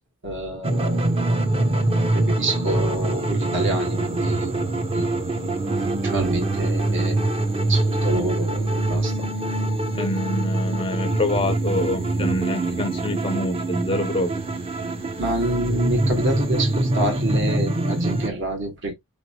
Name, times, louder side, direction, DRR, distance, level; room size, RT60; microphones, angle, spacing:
voice 1, 0.2-1.1 2.1-5.2 5.9-7.2 7.7-9.3 15.2-18.9, right 1 dB, 55° right, 1.4 m, -27 dB
sound 1, 0.6-18.3, right 2 dB, 25° right, 0.5 m, -24 dB
voice 2, 9.9-14.4, left 1 dB, 25° left, 0.4 m, -26 dB
4.4 x 2.9 x 2.8 m
head